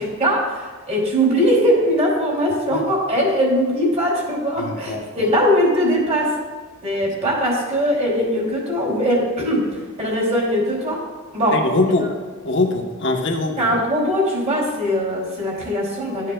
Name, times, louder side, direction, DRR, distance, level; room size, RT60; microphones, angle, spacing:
voice 1, 0.0-6.3 6.8-11.0 11.3-11.6 13.6-16.3, equal, 30° right, -3 dB, 2.7 m, -20 dB
voice 2, 4.6-5.3 11.5-12.1 12.4-13.7, left 2 dB, 55° left, 3 dB, 1.0 m, -22 dB
13.5 x 7.7 x 2.2 m, 1.4 s
head